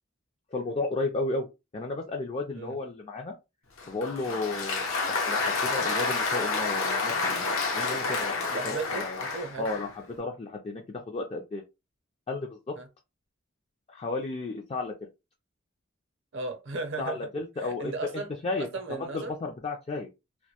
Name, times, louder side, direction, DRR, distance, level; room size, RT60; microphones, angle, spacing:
voice 1, 0.5-1.5 1.7-3.3 3.9-7.4 7.7-9.2 9.6-11.6 12.3-12.8 13.9-14.9 17.0-18.7 19.0-20.1, left 3 dB, 30° left, 0.3 m, -33 dB
Applause, 3.8-10.0, left 3 dB, 85° left, 0.7 m, -29 dB
voice 2, 8.5-9.7 12.8-12.9 16.3-17.3 17.6-18.3 18.6-19.3, right 3 dB, 65° right, 0.6 m, -35 dB
2.1 x 2.1 x 2.8 m
head